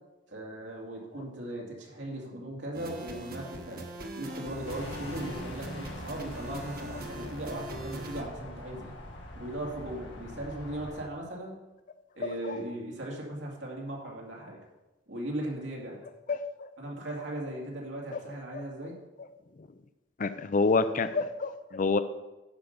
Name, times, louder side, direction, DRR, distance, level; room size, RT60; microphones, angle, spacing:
voice 1, 0.3-3.8 4.2-8.9 9.3-11.6 12.1-14.6 15.1-16.0 16.8-19.0, right 1 dB, 90° right, -2 dB, 2.6 m, -38 dB
sound 1, 2.7-8.2, right 1 dB, 50° right, 1.2 m, -41 dB
sound 2, 4.6-11.0, left 1 dB, 85° left, 1.7 m, -43 dB
voice 2, 16.3-16.7 18.5-18.6 20.2-22.0, left 3 dB, 45° left, 11 dB, 0.4 m, -27 dB
10.5 x 5.4 x 6.6 m, 1.1 s
head